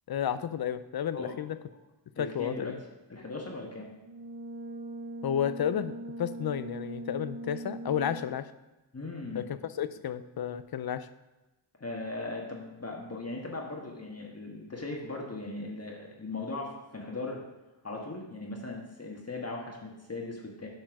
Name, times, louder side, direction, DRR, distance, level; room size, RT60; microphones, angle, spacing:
voice 1, 0.1-1.6 2.2-2.8 5.2-5.9 6.2-8.5 9.3-11.1, left 9 dB, 55° left, 13 dB, 0.5 m, -32 dB
voice 2, 2.2-2.8 3.1-3.9 8.9-9.5 11.8-17.4 17.8-20.7, left 2 dB, 30° left, -1 dB, 1.5 m, -38 dB
Brass instrument, 4.0-8.4, right 1 dB, 70° right, 1.0 m, -40 dB
7.7 x 4.5 x 5.9 m, 1.1 s
cardioid pair, 70°, 46 cm